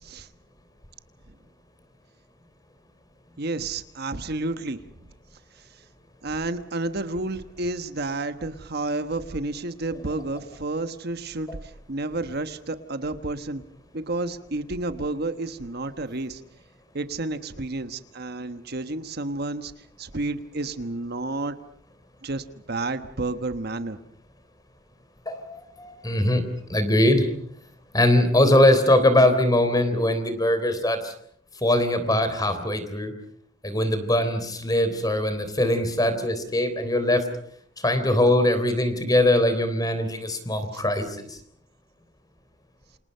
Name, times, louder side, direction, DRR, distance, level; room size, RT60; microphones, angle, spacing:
voice 1, 3.4-4.8 5.6-5.7 6.2-13.6 13.9-16.4 16.9-21.6 22.2-24.0 40.7-40.8, right 2 dB, 55° right, 10 dB, 1.2 m, -31 dB
voice 2, 25.3-26.4 26.7-27.3 27.9-31.1 31.6-33.1 33.6-37.2 37.8-41.4, left 1 dB, 20° left, 10 dB, 3.7 m, -21 dB
28.5 x 27.0 x 5.6 m, 0.65 s
head